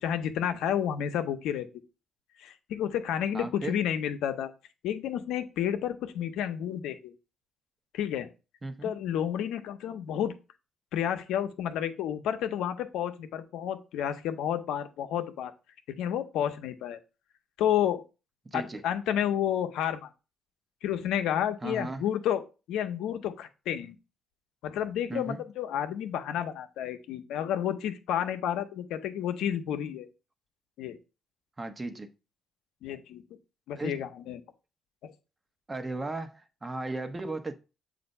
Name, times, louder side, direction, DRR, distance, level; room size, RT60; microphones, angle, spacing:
voice 1, 0.0-1.7 2.4-4.5 4.8-7.1 7.9-8.3 8.8-10.4 10.9-15.5 15.9-17.0 17.6-18.0 18.5-20.1 20.8-24.0 24.6-30.1 30.8-31.0 32.8-33.2 33.7-34.4 35.0-35.1, left 10 dB, 90° left, 0.7 m, -31 dB
voice 2, 3.3-3.8 8.6-9.0 18.4-18.8 21.6-22.0 25.1-25.4 31.6-32.1 33.8-34.0 35.7-37.5, right 2 dB, 25° right, 0.9 m, -36 dB
7.7 x 2.6 x 5.3 m
cardioid pair, 90°, 0 cm